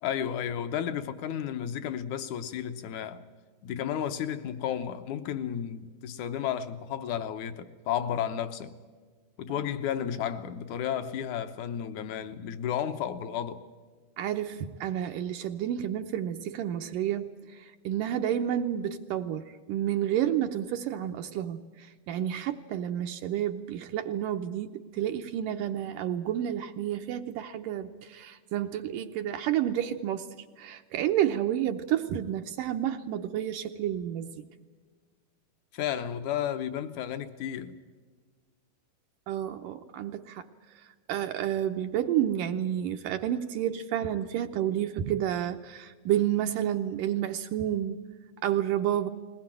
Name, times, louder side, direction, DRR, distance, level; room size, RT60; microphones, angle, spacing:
voice 1, 0.0-3.2 3.6-8.7 9.4-13.6 35.7-37.8, left 9 dB, 65° left, 2.1 m, -32 dB
voice 2, 14.2-34.4 39.3-40.5 40.8-48.0 48.4-49.1, right 11 dB, 75° right, 2.2 m, -30 dB
21.0 x 20.0 x 8.9 m
omnidirectional pair, 4.3 m